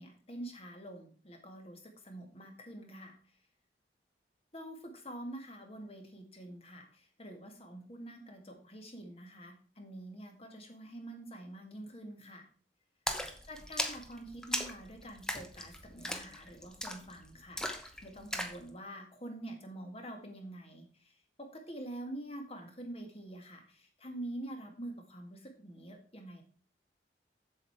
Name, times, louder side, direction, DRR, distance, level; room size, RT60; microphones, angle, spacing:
voice 1, 0.0-3.2 4.5-12.5 13.5-21.1 21.4-26.4, right 1 dB, 35° left, 4 dB, 1.9 m, -46 dB
Splash splatter, 13.1-18.6, equal, 5° left, 0.9 m, -38 dB
7.6 x 7.5 x 4.6 m, 0.40 s
head